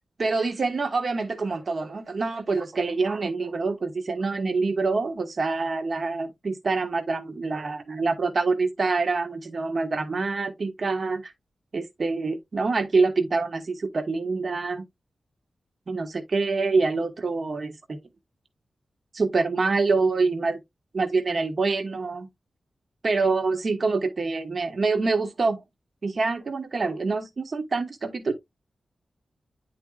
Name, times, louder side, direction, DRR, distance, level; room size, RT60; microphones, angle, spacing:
voice 1, 0.2-11.3 11.7-14.8 15.9-18.0 19.1-20.6 20.9-22.3 23.0-25.6 26.0-28.3, right 4 dB, 45° right, 1.3 m, -26 dB
10.0 x 4.4 x 2.3 m
wide cardioid pair, 130°, 0 cm